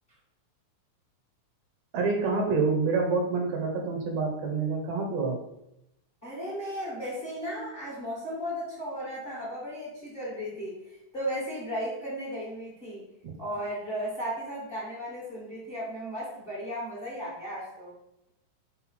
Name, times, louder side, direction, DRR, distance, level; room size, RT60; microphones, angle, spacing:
voice 1, 1.9-5.4 13.2-13.3, right 4 dB, 70° right, 2 dB, 2.3 m, -27 dB
voice 2, 6.2-10.8 11.1-13.0 13.4-17.9, equal, 20° left, -5 dB, 1.8 m, -35 dB
5.8 x 5.1 x 4.3 m, 0.84 s
omnidirectional pair, 3.4 m